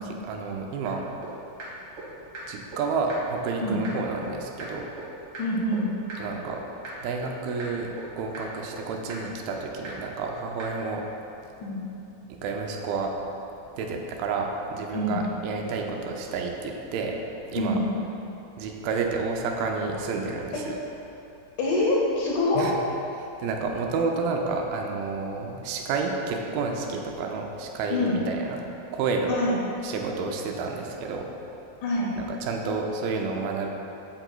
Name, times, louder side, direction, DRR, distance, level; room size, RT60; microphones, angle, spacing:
voice 1, 0.2-1.1 2.5-4.9 6.2-6.6 7.0-11.1 12.3-13.1 13.8-17.2 17.5-17.8 18.6-20.8 22.6-22.8 23.2-28.6 28.9-29.4 29.8-31.3 32.2-33.7, right 4 dB, 90° right, 1 dB, 2.4 m, -30 dB
sound 1, 0.9-1.0 1.2-1.3 1.6-1.7 2.0-2.1 2.3-2.4 2.7-2.8 3.1-3.2 3.5-3.6 3.8-3.9 4.2-4.3 4.6-4.7 5.0-5.1 5.3-5.4 5.7-5.8 6.1-6.2 6.5-6.6 6.8-6.9 7.2-7.3 7.6-7.7 8.0-8.1 8.3-8.4 8.7-8.8 9.1-9.2 9.5-9.6 9.8-9.9 10.2-10.3 10.6-10.7, right 4 dB, 60° right, 1.4 m, -38 dB
voice 2, 5.4-5.9 11.6-11.8 14.9-15.2 17.6-17.9 20.5-20.6 21.6-22.7 27.9-28.2 29.3-29.6 31.8-32.1, left 2 dB, 75° left, -3 dB, 2.0 m, -25 dB
7.8 x 5.9 x 2.2 m, 2.9 s
omnidirectional pair, 4.1 m